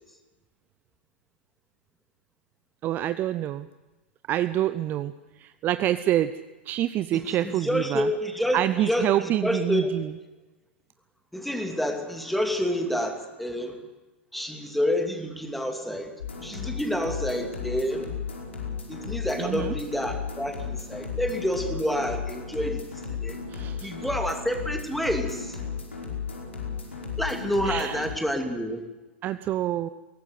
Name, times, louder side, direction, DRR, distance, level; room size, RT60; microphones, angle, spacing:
voice 1, 2.8-3.7 4.3-5.1 5.4-6.3 6.7-8.1 8.5-10.1 19.4-19.8 23.5-23.9 27.6-28.1 29.2-29.9, right 13 dB, 30° right, 12 dB, 0.6 m, -26 dB
voice 2, 7.1-10.0 11.3-13.8 14.3-16.1 16.4-18.1 18.9-22.8 23.1-23.4 23.8-25.6 27.2-28.8, equal, ahead, 4 dB, 2.7 m, -28 dB
sound 1, 16.2-28.1, left 6 dB, 75° left, 5.2 m, -34 dB
22.5 x 18.0 x 8.1 m, 1.1 s
figure-of-eight pair, 95°, 6 cm